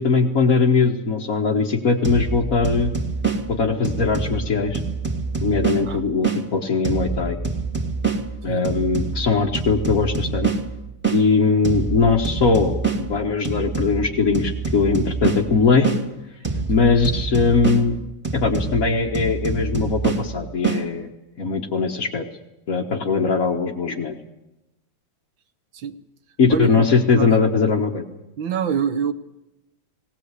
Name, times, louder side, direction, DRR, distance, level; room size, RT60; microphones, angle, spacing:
voice 1, 0.0-2.9 3.5-4.8 5.4-7.4 8.4-10.5 11.1-16.0 16.7-18.0 18.3-21.1 21.4-22.2 22.7-24.2 26.4-28.0, left 4 dB, 45° left, -2 dB, 1.7 m, -20 dB
sound 1, 2.0-6.4 6.8-11.2 11.6-16.0 16.4-20.8, right 4 dB, 5° right, 2.2 m, -26 dB
voice 2, 26.5-26.9 27.2-27.4 28.4-29.1, right 7 dB, 75° right, 10 dB, 1.9 m, -25 dB
19.0 x 19.0 x 8.3 m, 0.93 s
omnidirectional pair, 2.1 m